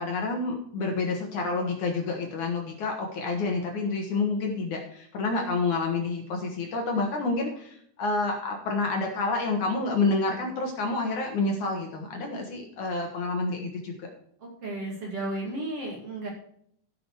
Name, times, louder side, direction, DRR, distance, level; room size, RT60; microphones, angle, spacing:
voice 1, 0.0-14.1, left 3 dB, 60° left, 2 dB, 2.5 m, -28 dB
voice 2, 14.4-16.3, right 1 dB, 45° right, -1 dB, 2.6 m, -34 dB
14.5 x 6.3 x 4.7 m, 0.67 s
omnidirectional pair, 4.6 m